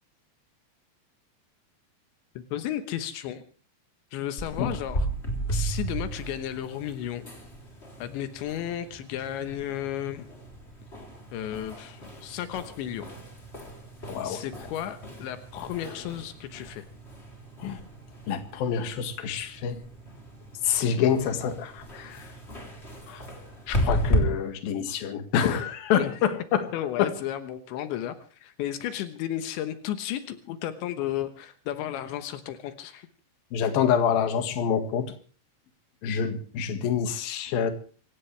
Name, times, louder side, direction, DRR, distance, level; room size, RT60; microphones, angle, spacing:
voice 1, 2.4-3.4 4.1-5.1 5.5-7.3 8.0-10.3 11.3-13.1 14.2-16.9 26.0-26.1 26.7-28.2 28.4-33.1, left 11 dB, 80° left, 10 dB, 3.5 m, -33 dB
sound 1, 4.4-24.2, right 1 dB, 15° left, 3.2 m, -35 dB
voice 2, 14.1-14.4 17.6-17.8 18.3-19.8 20.6-22.3 23.1-23.2 23.7-26.7 27.0-27.1 33.5-35.1 36.0-37.7, left 8 dB, 60° left, 8 dB, 3.3 m, -27 dB
26.0 x 16.0 x 3.4 m, 0.40 s
omnidirectional pair, 5.1 m